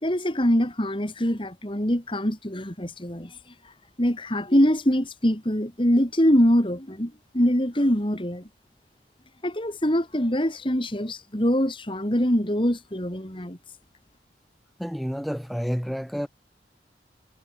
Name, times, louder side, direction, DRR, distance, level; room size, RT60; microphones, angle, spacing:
voice 1, 0.0-3.3 4.0-8.4 9.4-13.6, equal, 30° left, 3.6 m, -23 dB
voice 2, 14.8-16.3, equal, ahead, 7.0 m, -29 dB
head